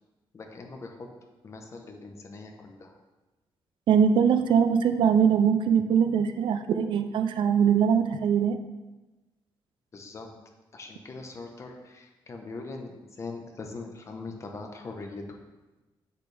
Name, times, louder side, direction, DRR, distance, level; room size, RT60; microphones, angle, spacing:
voice 1, 0.3-1.1 1.4-3.0 9.9-10.3 10.7-15.2, left 3 dB, 35° left, 3 dB, 1.0 m, -41 dB
voice 2, 3.9-8.6, right 7 dB, 70° right, 9 dB, 0.5 m, -22 dB
7.9 x 6.6 x 3.4 m, 1.1 s
cardioid pair, 140°, 9 cm